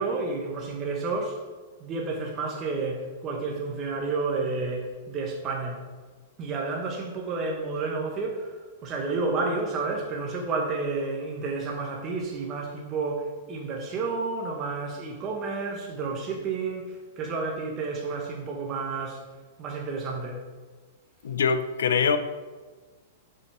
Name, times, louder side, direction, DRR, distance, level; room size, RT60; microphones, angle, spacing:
voice 1, 0.0-1.4 1.8-5.9 6.4-19.2 19.6-20.5, right 3 dB, 30° right, 0.9 m, -31 dB
voice 2, 21.2-22.2, left 6 dB, 90° left, 0.5 m, -23 dB
7.2 x 5.5 x 3.3 m
hypercardioid pair, 140°, 0 cm